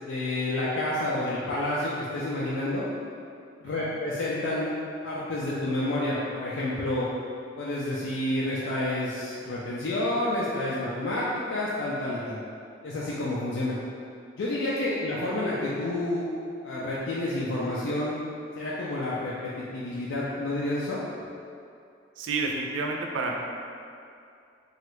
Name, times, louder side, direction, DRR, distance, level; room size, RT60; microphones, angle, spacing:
voice 1, 0.0-2.8 3.6-4.7 5.0-7.1 7.6-12.4 12.8-13.8 14.4-16.3 16.6-18.2 18.5-21.0, left 1 dB, 80° left, -7 dB, 0.4 m, -29 dB
voice 2, 22.2-23.4, right 3 dB, 85° right, 0 dB, 0.4 m, -30 dB
3.0 x 2.4 x 3.0 m, 2.5 s
head